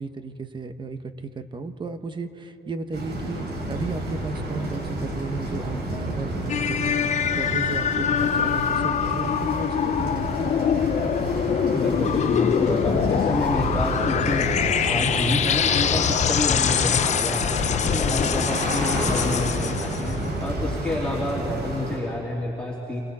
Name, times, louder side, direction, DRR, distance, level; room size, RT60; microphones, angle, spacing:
voice 1, 0.0-10.3 17.8-18.2, right 3 dB, 30° right, 9 dB, 1.3 m, -34 dB
sound 1, 2.9-22.0, right 1 dB, 65° right, 7.5 m, -30 dB
sound 2, 6.5-20.2, left 8 dB, 45° left, 0.8 m, -24 dB
voice 2, 11.7-14.5 14.8-17.5 17.8-23.0, left 1 dB, 5° left, -6 dB, 3.0 m, -29 dB
27.5 x 27.0 x 4.3 m, 2.9 s
cardioid pair, 110°, 17 cm